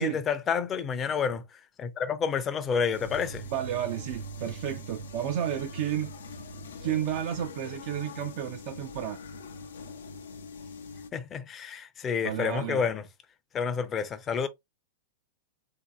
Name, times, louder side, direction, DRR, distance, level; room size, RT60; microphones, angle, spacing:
voice 1, 0.0-1.4 1.8-3.5 11.1-13.0 13.5-14.5, left 6 dB, 25° left, 0.6 m, -29 dB
sound 1, 2.9-11.1, equal, 75° left, 0.6 m, -42 dB
voice 2, 3.5-6.1 6.8-9.2 12.2-12.8, right 10 dB, 50° right, 0.5 m, -32 dB
3.7 x 2.8 x 2.4 m
hypercardioid pair, 105°, 0 cm